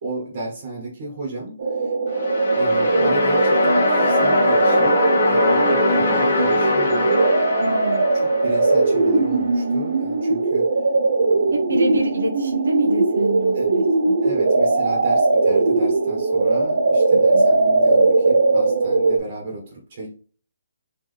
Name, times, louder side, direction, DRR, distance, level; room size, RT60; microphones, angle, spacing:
voice 1, 0.0-1.9 2.5-7.2 8.1-10.7 11.3-11.5 13.5-13.7 14.2-20.1, right 2 dB, 35° right, -2 dB, 1.3 m, -33 dB
sound 1, 1.6-19.2, right 3 dB, 55° right, 0.6 m, -19 dB
sound 2, 2.1-9.1, left 2 dB, 50° left, 1.3 m, -21 dB
voice 2, 7.6-8.1 11.5-14.2 17.1-17.5, right 2 dB, 85° right, 1 dB, 1.0 m, -26 dB
4.0 x 3.1 x 3.3 m, 0.41 s
hypercardioid pair, 170°, 0 cm